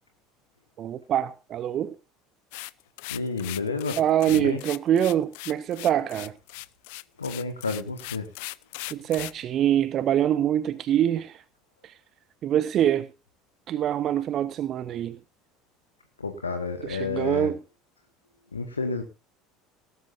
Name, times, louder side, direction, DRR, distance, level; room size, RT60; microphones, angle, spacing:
voice 1, 0.8-1.9 4.0-6.3 8.9-11.4 11.8-11.9 12.4-13.1 13.7-15.2 16.8-17.6, right 10 dB, 40° right, 0.8 m, -25 dB
sound 1, 2.5-9.4, left 23 dB, 60° left, 0.5 m, -38 dB
voice 2, 3.1-4.0 4.3-4.6 7.2-8.3 16.2-17.5 18.5-19.0, left 4 dB, 80° left, 1.4 m, -30 dB
18.5 x 12.5 x 2.6 m
figure-of-eight pair, 65°, 0 cm